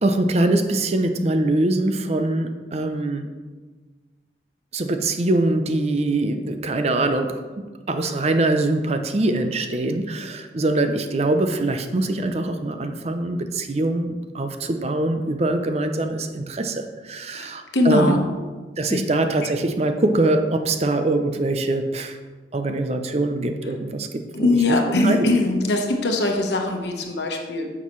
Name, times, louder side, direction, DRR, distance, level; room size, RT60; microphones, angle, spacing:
voice 1, 0.0-3.3 4.7-18.2 18.8-22.2 22.5-24.6 25.0-25.3, right 2 dB, 35° right, 7 dB, 0.6 m, -23 dB
voice 2, 17.3-18.2 18.9-19.0 24.3-27.7, left 2 dB, 75° left, 2 dB, 1.2 m, -21 dB
9.6 x 7.3 x 3.1 m, 1.4 s
head